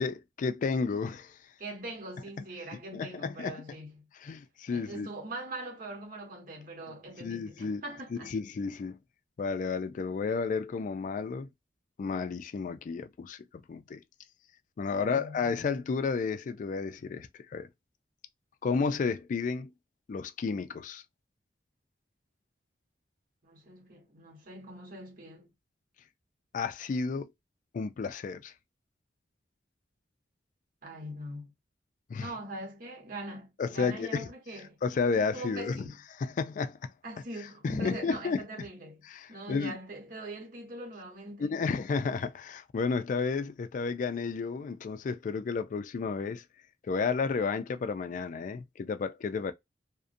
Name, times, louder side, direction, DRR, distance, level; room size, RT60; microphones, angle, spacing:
voice 1, 0.0-1.3 2.9-3.6 4.2-5.1 7.2-7.8 8.1-9.0 9.4-11.5 12.0-14.0 14.8-17.7 18.6-19.7 20.1-21.0 26.5-27.3 27.7-28.5 32.1-32.3 33.6-34.3 34.8-35.9 36.2-36.8 37.6-38.4 39.1-39.7 41.4-46.4 46.9-49.5, left 5 dB, 45° left, 0.3 m, -32 dB
voice 2, 1.6-4.1 4.7-8.3 14.9-15.4 23.4-25.5 30.8-31.5 32.2-34.8 35.2-36.0 37.0-41.6, right 2 dB, 50° right, 1.1 m, -42 dB
2.4 x 2.1 x 2.5 m
head